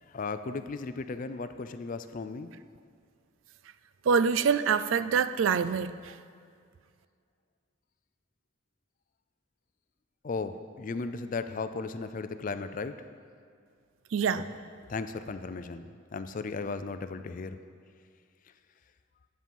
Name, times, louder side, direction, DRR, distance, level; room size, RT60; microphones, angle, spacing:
voice 1, 0.1-2.5 10.2-13.0 14.9-17.6, left 4 dB, 40° left, 10 dB, 0.4 m, -36 dB
voice 2, 4.0-6.2 14.1-14.5, right 6 dB, 70° right, 13 dB, 0.4 m, -25 dB
9.9 x 7.6 x 5.4 m, 2.2 s
head